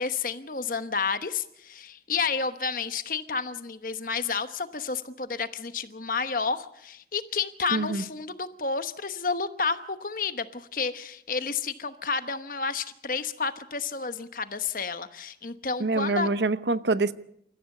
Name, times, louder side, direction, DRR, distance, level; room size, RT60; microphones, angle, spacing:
voice 1, 0.0-16.3, left 5 dB, 50° left, 1.1 m, -30 dB
voice 2, 7.7-8.0 15.8-17.1, right 3 dB, 80° right, 0.9 m, -25 dB
28.0 x 14.5 x 6.6 m
head